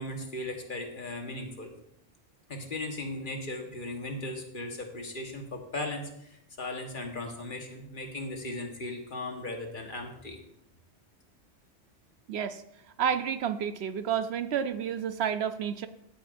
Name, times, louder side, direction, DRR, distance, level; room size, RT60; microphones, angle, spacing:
voice 1, 0.0-1.7 2.5-10.4, left 2 dB, 45° left, 3 dB, 1.4 m, -37 dB
voice 2, 12.3-12.6 13.0-15.9, right 8 dB, 70° right, 11 dB, 0.8 m, -30 dB
15.5 x 8.7 x 2.6 m, 0.79 s
omnidirectional pair, 1.2 m